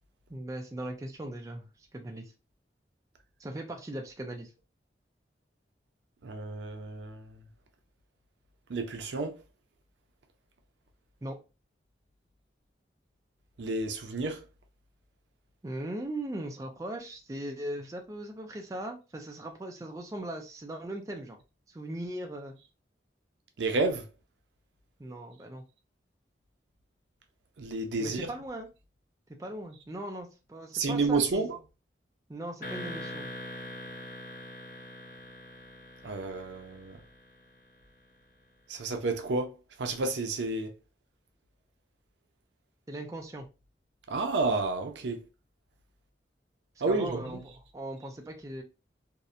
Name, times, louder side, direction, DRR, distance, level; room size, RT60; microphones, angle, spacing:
voice 1, 0.3-2.3 3.4-4.5 11.2-11.4 15.6-21.4 21.7-22.5 25.0-25.6 28.0-28.7 29.4-31.5 32.3-33.3 42.9-43.5 46.9-48.6, right 1 dB, 20° right, 0.3 m, -39 dB
voice 2, 6.2-7.4 8.7-9.4 13.6-14.4 23.6-24.0 27.6-28.3 30.7-31.6 36.0-37.0 38.7-39.5 39.8-40.7 44.1-45.2 46.8-47.4, right 3 dB, 80° right, 0.5 m, -30 dB
sound 1, 32.6-37.5, left 1 dB, 50° left, 0.6 m, -43 dB
2.7 x 2.1 x 2.4 m
head